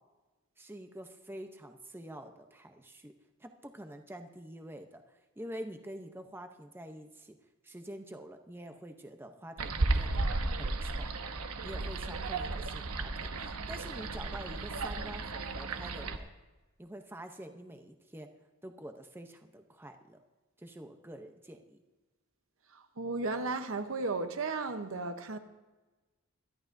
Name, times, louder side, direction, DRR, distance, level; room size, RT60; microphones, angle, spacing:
voice 1, 0.6-3.1 3.4-5.0 5.4-7.4 7.6-10.3 10.6-11.1 11.6-16.3 16.8-18.3 18.6-20.2 20.6-21.8, right 1 dB, 10° right, 0.7 m, -46 dB
sound 1, 9.6-16.2, right 2 dB, 90° right, 1.0 m, -34 dB
voice 2, 22.7-25.4, right 3 dB, 65° right, 0.9 m, -34 dB
22.0 x 13.5 x 2.7 m
head